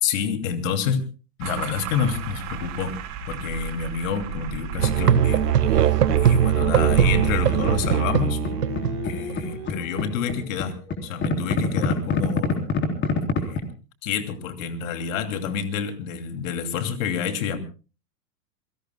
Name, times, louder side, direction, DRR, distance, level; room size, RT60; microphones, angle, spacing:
voice 1, 0.0-1.0 1.4-2.9 3.3-8.4 9.0-10.7 11.0-12.7 13.4-13.6 14.0-17.6, left 7 dB, 55° left, 7 dB, 2.8 m, -28 dB
sound 1, 1.4-7.8, right 6 dB, 35° right, 4.9 m, -33 dB
Musical instrument, 4.8-9.6, right 10 dB, 80° right, 1.5 m, -21 dB
sound 2, 6.4-7.6 7.8-13.6, left 5 dB, 25° left, 3.8 m, -27 dB
27.5 x 18.0 x 2.3 m, 0.35 s
hypercardioid pair, 115°, 47 cm